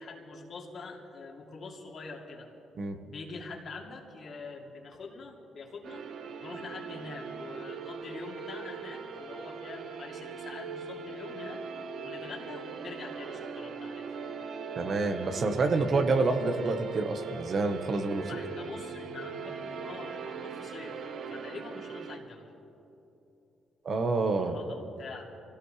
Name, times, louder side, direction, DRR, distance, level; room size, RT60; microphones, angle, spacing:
voice 1, 0.0-2.5 3.0-6.1 6.4-11.6 12.0-14.2 18.2-21.0 21.3-22.5 24.4-25.2, left 4 dB, 55° left, -1 dB, 2.5 m, -44 dB
sound 1, 5.8-22.2, right 5 dB, 65° right, 1.1 m, -40 dB
voice 2, 14.8-18.2 23.8-24.6, right 3 dB, 50° right, 6 dB, 1.3 m, -28 dB
24.5 x 17.0 x 3.3 m, 2.9 s
cardioid pair, 90°, 0 cm